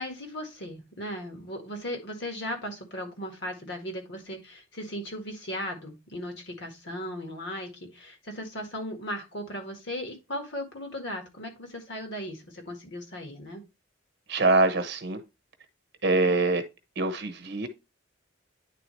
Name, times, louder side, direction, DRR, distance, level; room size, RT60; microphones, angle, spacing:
voice 1, 0.0-13.6, equal, 55° left, 1.7 m, -37 dB
voice 2, 14.3-15.2 16.0-16.6 17.0-17.7, right 3 dB, 55° right, 1.0 m, -24 dB
9.4 x 3.8 x 3.1 m
head